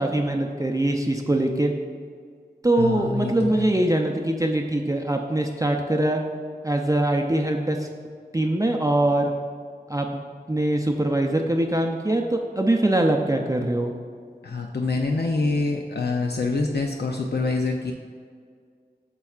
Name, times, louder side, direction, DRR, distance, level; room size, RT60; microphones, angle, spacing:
voice 1, 0.0-1.7 2.6-6.2 6.6-7.9 8.3-9.3 9.9-10.2 10.5-13.9, right 1 dB, 20° right, 2 dB, 0.5 m, -23 dB
voice 2, 2.8-3.7 14.4-17.9, left 3 dB, 75° left, 1 dB, 0.5 m, -26 dB
8.7 x 6.8 x 2.4 m, 2.1 s
wide cardioid pair, 45°, 17 cm